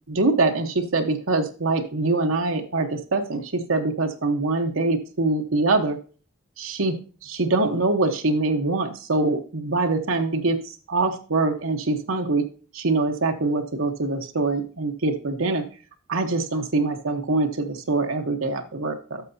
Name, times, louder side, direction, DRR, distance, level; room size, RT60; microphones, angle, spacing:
voice 1, 0.1-6.0 6.6-6.9 7.2-12.4 12.7-15.6 16.1-19.2, right 3 dB, 80° right, 4 dB, 1.1 m, -24 dB
11.5 x 6.6 x 2.7 m, 0.38 s
head